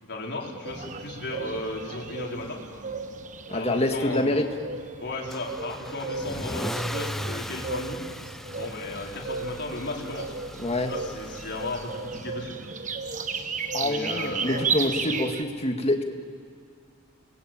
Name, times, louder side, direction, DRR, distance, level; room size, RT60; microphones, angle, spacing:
voice 1, 0.0-2.6 3.5-4.4 5.0-8.0 8.5-10.4 10.9-12.6 13.3-13.4 13.8-14.8, left 2 dB, 50° left, -1 dB, 4.5 m, -35 dB
sound 1, 0.6-15.4, right 4 dB, 35° right, 1.2 m, -34 dB
voice 2, 3.5-4.5 10.6-10.9 13.7-16.0, left 1 dB, 30° left, 4 dB, 2.0 m, -26 dB
Car / Engine starting / Accelerating revving vroom, 5.3-12.4, equal, ahead, 0.6 m, -38 dB
29.5 x 20.5 x 9.0 m, 2.2 s
head